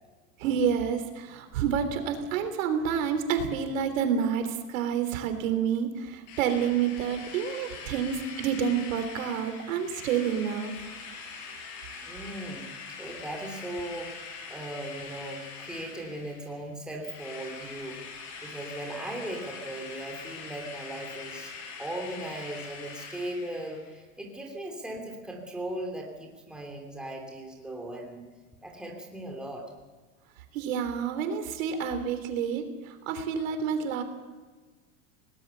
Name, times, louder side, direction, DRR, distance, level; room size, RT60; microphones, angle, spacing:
voice 1, 0.4-10.7 30.5-34.0, right 7 dB, 70° right, 7 dB, 3.5 m, -29 dB
Drill, 6.3-16.7 17.0-23.9, left 5 dB, 40° left, 5.6 m, -43 dB
voice 2, 12.0-12.7 13.0-14.1 14.5-18.0 18.4-21.5 21.8-28.3 28.6-29.7, right 1 dB, ahead, 0 dB, 2.9 m, -38 dB
21.0 x 19.0 x 6.9 m, 1.3 s
supercardioid pair, 155°, 41 cm